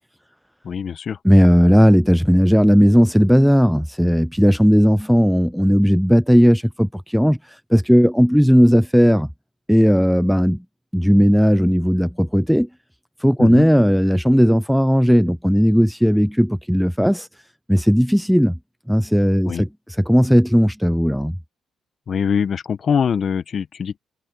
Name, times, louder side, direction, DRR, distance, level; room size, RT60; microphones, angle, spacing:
voice 1, 0.6-1.2 13.4-13.7 19.5-19.6 22.1-24.0, left 7 dB, 50° left, 1.1 m, -23 dB
voice 2, 1.2-7.4 7.7-9.3 9.7-10.6 10.9-12.7 13.2-17.3 17.7-18.6 18.9-19.7 20.0-21.4, equal, ahead, 0.4 m, -15 dB
cardioid pair, 90°, 0 cm